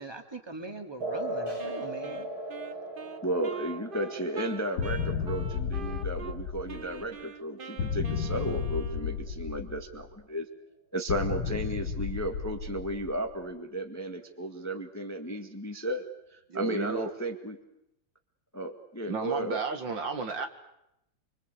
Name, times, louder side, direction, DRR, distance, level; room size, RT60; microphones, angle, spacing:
voice 1, 0.0-2.3, right 3 dB, 10° right, 5 dB, 2.3 m, -41 dB
sound 1, 1.0-8.0, right 1 dB, 80° right, 7.2 m, -39 dB
Wind instrument woodwind instrument, 1.6-6.4 6.7-9.3, right 5 dB, 35° right, 0.9 m, -44 dB
voice 2, 3.2-10.5 10.9-16.0 16.3-17.6 18.5-19.6, right 1 dB, 10° left, 6 dB, 1.5 m, -34 dB
sound 2, 4.8-7.1 7.8-10.1 11.1-13.4, left 6 dB, 85° left, 2.3 m, -33 dB
voice 3, 16.5-17.1 19.1-20.5, right 4 dB, 65° right, 6 dB, 2.5 m, -32 dB
26.0 x 25.0 x 8.3 m, 0.82 s
omnidirectional pair, 2.2 m